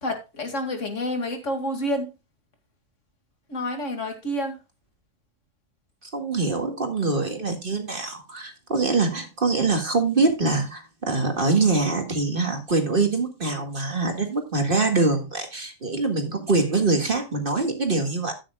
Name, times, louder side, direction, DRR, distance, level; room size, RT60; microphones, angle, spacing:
voice 1, 0.0-2.1 3.5-4.6, left 1 dB, 65° left, 5 dB, 2.7 m, -28 dB
voice 2, 6.1-18.3, right 3 dB, 40° right, 5 dB, 2.0 m, -24 dB
12.5 x 9.5 x 2.3 m, 0.26 s
omnidirectional pair, 1.4 m